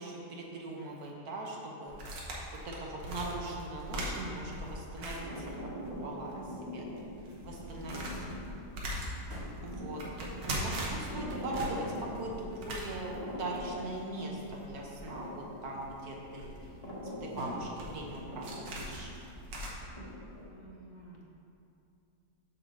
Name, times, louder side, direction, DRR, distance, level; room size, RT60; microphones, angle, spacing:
voice 1, 0.0-2.0 2.6-5.5 5.9-6.8 7.4-8.1 9.6-16.7 17.0-19.1, right 2 dB, 60° right, -2 dB, 1.4 m, -40 dB
sound 1, 0.6-1.6 2.0-2.5 3.1-3.2 3.4-6.2 6.6-7.2 7.6-7.8 9.3-9.7 11.6-12.1 12.5-16.9 17.4-18.0 18.4-20.5, equal, 40° right, 1.3 m, -51 dB
sound 2, 1.9-6.0 6.3-6.4 6.9-19.7, right 1 dB, 85° right, 1.8 m, -41 dB
sound 3, 5.0-20.5, left 1 dB, 20° left, 1.6 m, -44 dB
voice 2, 8.7-9.1 9.9-10.4 20.5-21.2, right 1 dB, 55° left, -2 dB, 1.1 m, -54 dB
7.3 x 3.7 x 6.4 m, 2.6 s
omnidirectional pair, 1.9 m